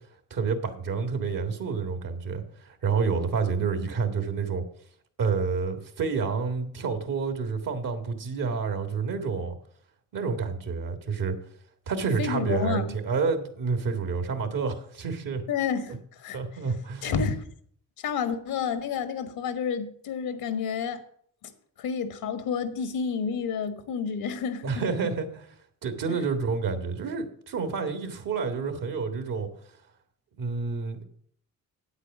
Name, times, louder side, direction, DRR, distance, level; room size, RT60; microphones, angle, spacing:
voice 1, 0.3-4.6 5.2-9.6 10.1-11.4 11.9-15.4 16.3-17.1 24.6-25.5 25.8-29.5 30.4-31.0, right 5 dB, 70° right, 1.8 m, -29 dB
voice 2, 12.2-12.9 15.5-16.4 17.0-17.4 18.0-21.0 21.4-21.5 21.8-24.6 26.1-26.2, left 6 dB, 85° left, 1.4 m, -30 dB
8.7 x 8.2 x 6.1 m
supercardioid pair, 60°, 35 cm